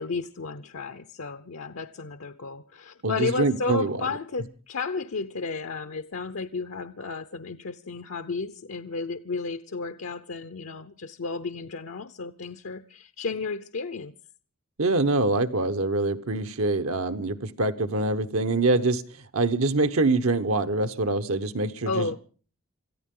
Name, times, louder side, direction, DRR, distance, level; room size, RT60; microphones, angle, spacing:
voice 1, 0.0-14.1 21.9-22.2, left 4 dB, 75° left, 0.8 m, -33 dB
voice 2, 3.0-4.0 14.8-19.0 19.3-22.2, right 2 dB, 80° right, 1.2 m, -24 dB
26.0 x 14.5 x 3.8 m
head